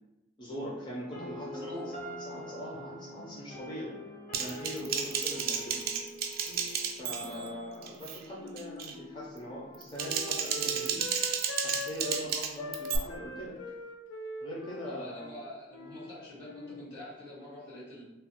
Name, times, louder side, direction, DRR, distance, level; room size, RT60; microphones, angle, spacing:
voice 1, 0.4-1.8 2.0-3.9 4.4-5.8 7.0-11.1 11.6-13.6 14.4-15.4, equal, 25° left, -7 dB, 0.5 m, -41 dB
sound 1, 1.1-9.1, left 1 dB, 40° left, 0.9 m, -45 dB
voice 2, 1.5-1.9 7.2-7.5 14.8-18.0, left 1 dB, 70° left, -8 dB, 1.5 m, -45 dB
Typing, 4.3-7.5 7.8-8.2 8.6-8.9 9.7-13.0, right 7 dB, 50° right, 0.3 m, -33 dB
Wind instrument woodwind instrument, 8.4-12.3 12.6-16.1 16.4-16.9, left 1 dB, 90° left, 0.3 m, -42 dB
3.0 x 2.1 x 2.9 m, 0.97 s
head